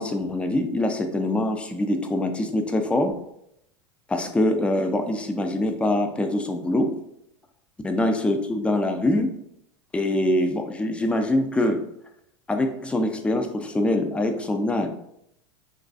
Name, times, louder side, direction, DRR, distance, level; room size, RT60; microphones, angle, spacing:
voice 1, 0.0-3.1 4.1-6.9 7.8-9.4 9.9-11.8 12.5-14.9, left 1 dB, 5° left, 5 dB, 0.3 m, -24 dB
3.0 x 2.4 x 2.4 m, 0.76 s
hypercardioid pair, 100°, 16 cm